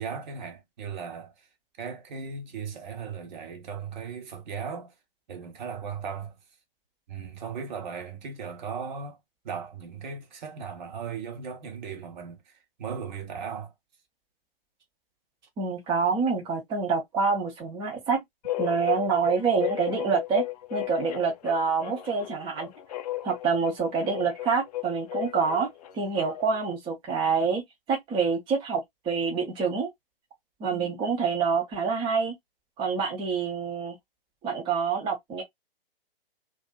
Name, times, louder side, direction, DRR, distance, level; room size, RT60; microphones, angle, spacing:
voice 1, 0.0-1.5 1.8-4.9 5.3-6.3 7.1-9.2 9.4-12.5 12.8-13.7, right 6 dB, 50° right, 1.1 m, -37 dB
voice 2, 15.6-18.2 18.6-20.4 20.7-22.7 23.2-25.7 25.9-27.6 27.9-29.9 30.6-32.3 32.8-33.9 34.4-35.4, right 5 dB, 15° right, 0.8 m, -26 dB
sound 1, 18.4-26.7, left 15 dB, 45° left, 0.5 m, -35 dB
2.6 x 2.5 x 2.2 m
hypercardioid pair, 130°, 29 cm